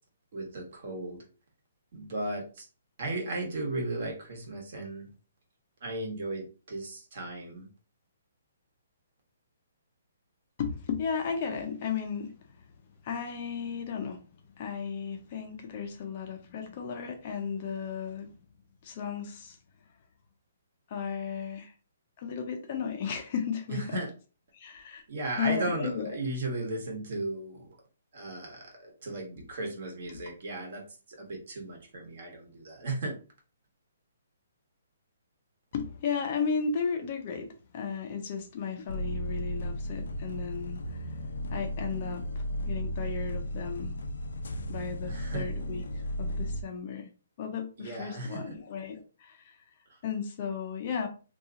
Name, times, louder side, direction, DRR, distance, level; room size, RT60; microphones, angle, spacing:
voice 1, 0.3-1.2 1.9-2.7 3.0-5.1 5.8-7.7 23.7-24.1 25.1-27.7 28.1-30.8 31.1-33.1 45.1-45.5 47.8-48.4, right 2 dB, 45° right, 1 dB, 1.2 m, -35 dB
voice 2, 10.6-12.4 13.0-14.2 14.6-18.3 18.8-19.6 20.9-21.7 22.2-24.0 24.5-25.0 25.4-26.1 30.1-30.2 35.7-41.1 41.5-43.9 44.7-47.1 47.4-49.6 50.0-51.1, left 6 dB, 30° left, 5 dB, 0.5 m, -34 dB
sound 1, 38.9-46.6, equal, 80° left, 0.5 m, -34 dB
2.8 x 2.3 x 3.7 m, 0.36 s
hypercardioid pair, 170°, 0 cm